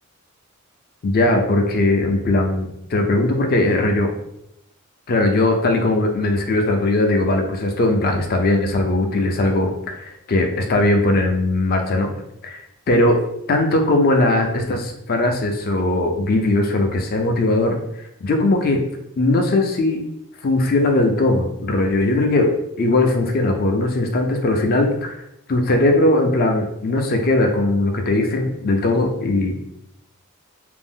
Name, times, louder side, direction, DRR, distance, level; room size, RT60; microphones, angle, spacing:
voice 1, 1.0-4.1 5.1-12.1 12.4-12.6 12.9-13.2 13.5-17.7 18.2-18.8 19.2-20.0 20.4-22.5 22.8-25.2 25.5-29.6, left 2 dB, 45° left, 3 dB, 0.4 m, -19 dB
2.5 x 2.0 x 3.5 m, 0.80 s
head